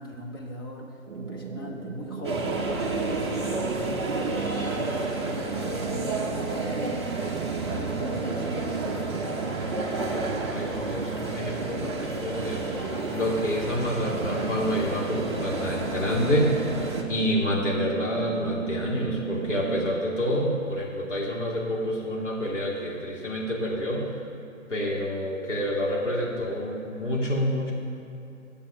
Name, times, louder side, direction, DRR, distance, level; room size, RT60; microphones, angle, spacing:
voice 1, 0.0-7.1 7.6-9.0, left 1 dB, 15° left, -1 dB, 0.8 m, -39 dB
sound 1, 1.1-20.0, right 7 dB, 55° right, 0.7 m, -37 dB
sound 2, 2.2-17.0, right 2 dB, 20° right, 0.7 m, -31 dB
voice 2, 9.5-24.1 24.7-27.7, equal, 60° left, -4 dB, 2.7 m, -28 dB
10.0 x 7.0 x 5.7 m, 2.8 s
figure-of-eight pair, 140°, 40 cm